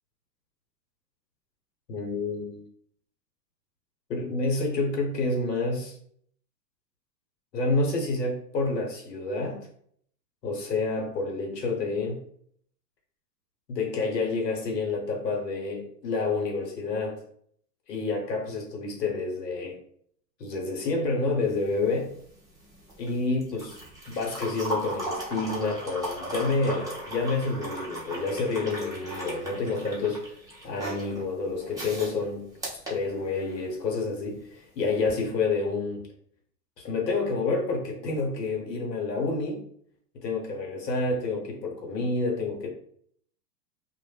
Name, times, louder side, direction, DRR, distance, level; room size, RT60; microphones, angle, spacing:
voice 1, 1.9-2.6 4.1-5.9 7.5-9.7 10.4-12.2 13.7-17.2 17.9-19.8 20.4-22.1 23.0-23.8 24.1-32.5 32.7-36.0 36.8-39.6 40.1-42.7, left 3 dB, 80° left, 1 dB, 0.9 m, -29 dB
sound 1, 21.4-33.7 35.0-35.2, right 1 dB, 10° right, 0.6 m, -37 dB
2.1 x 2.0 x 3.2 m, 0.64 s
hypercardioid pair, 100°, 49 cm